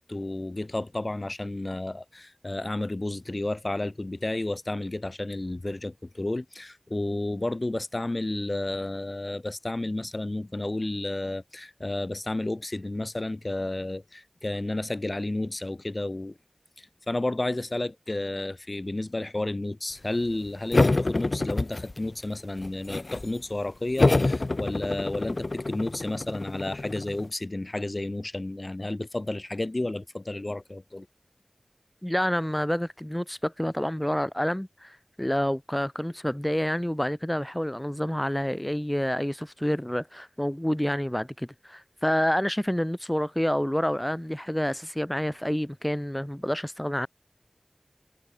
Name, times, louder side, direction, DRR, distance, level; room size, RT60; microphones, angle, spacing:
voice 1, 0.1-16.4 16.8-31.1, left 2 dB, 60° left, 1.0 m, -31 dB
sound 1, 20.7-22.2 22.6-23.3 24.0-27.3, left 2 dB, 85° left, 0.3 m, -26 dB
voice 2, 32.0-47.1, equal, 10° left, 0.4 m, -28 dB
wide cardioid pair, 45°, 0 cm